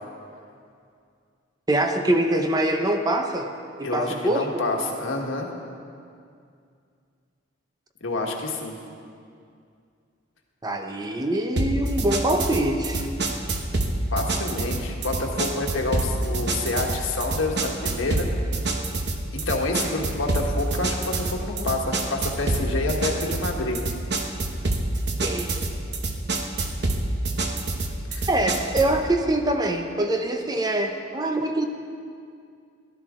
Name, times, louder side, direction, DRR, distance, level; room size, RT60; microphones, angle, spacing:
voice 1, 1.7-3.5 3.8-4.7 10.6-13.1 25.2-25.5 28.3-31.7, right 1 dB, 20° right, 5 dB, 0.6 m, -24 dB
voice 2, 3.8-5.5 8.0-8.7 14.1-18.3 19.3-23.8 28.1-28.3, left 2 dB, 90° left, 1 dB, 1.5 m, -28 dB
sound 1, 11.6-29.0, right 2 dB, 55° right, 1.0 m, -27 dB
sound 2, 12.9-13.8 14.2-14.3, equal, 50° left, 1.7 m, -44 dB
17.0 x 11.5 x 3.7 m, 2.4 s
head